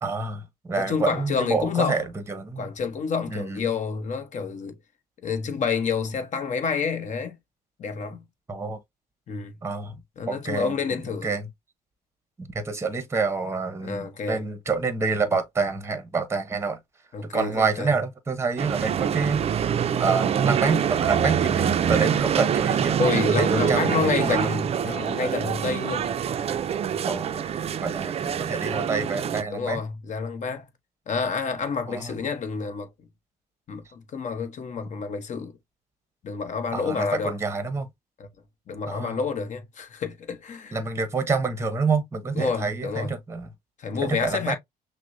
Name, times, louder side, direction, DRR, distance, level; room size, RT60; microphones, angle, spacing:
voice 1, 0.0-2.7 3.3-3.6 8.5-8.8 9.6-10.0 10.3-10.7 11.2-11.4 12.4-16.8 17.2-19.4 20.0-24.5 27.1-27.4 27.8-29.8 31.9-32.1 36.7-37.9 38.9-39.1 40.7-43.5 44.0-44.5, right 4 dB, 15° right, 0.8 m, -27 dB
voice 2, 0.8-2.0 2.6-4.7 5.2-7.3 7.8-8.2 9.3-9.6 10.2-11.3 13.8-14.4 17.1-17.9 23.0-26.1 26.9-27.0 29.5-30.7 31.1-32.9 33.7-35.5 36.2-37.4 38.2-38.3 38.7-40.8 42.3-43.2 43.8-44.5, left 5 dB, 45° left, 1.0 m, -28 dB
sound 1, 18.6-29.4, right 8 dB, 40° right, 0.4 m, -25 dB
5.9 x 2.1 x 2.6 m
cardioid pair, 110°, 17 cm